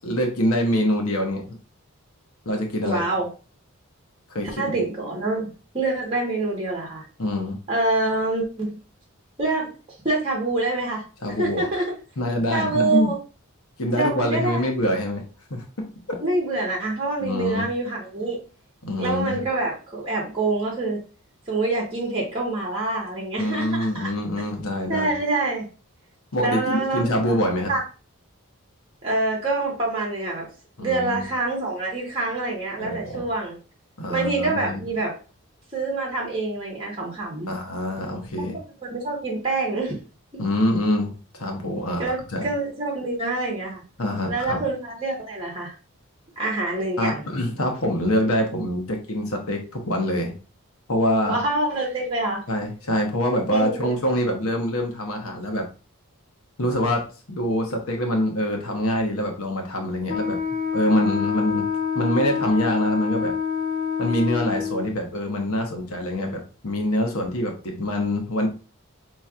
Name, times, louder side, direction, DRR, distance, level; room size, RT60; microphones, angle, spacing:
voice 1, 0.0-1.5 2.4-3.0 4.3-4.8 7.2-7.6 11.2-11.7 12.2-13.1 13.8-15.2 15.5-15.6 16.1-16.2 17.2-17.7 18.8-19.4 23.4-25.1 26.3-27.7 30.8-31.3 32.8-33.3 34.0-34.8 37.5-38.6 40.4-42.5 44.0-44.6 47.0-50.3 50.9-51.4 52.5-55.7 56.6-57.0 57.3-60.4 60.7-61.7 61.9-63.3 64.0-68.5, left 1 dB, 75° left, 2 dB, 1.0 m, -25 dB
voice 2, 2.8-3.3 4.6-5.5 5.7-7.0 7.7-8.8 9.4-9.7 10.0-11.1 11.4-11.9 12.5-13.2 14.0-14.7 16.2-18.4 19.0-21.0 21.5-24.1 24.9-25.7 26.4-27.4 27.7-27.8 29.0-30.5 30.8-33.6 34.1-35.1 35.7-37.5 38.8-40.0 40.3-40.4 42.0-43.8 44.3-45.7 46.4-47.2 51.2-52.4 53.5-53.9, right 2 dB, 25° right, -3 dB, 1.2 m, -26 dB
Wind instrument woodwind instrument, 60.1-64.9, left 6 dB, 50° left, 1.1 m, -26 dB
5.4 x 3.0 x 2.4 m, 0.34 s
head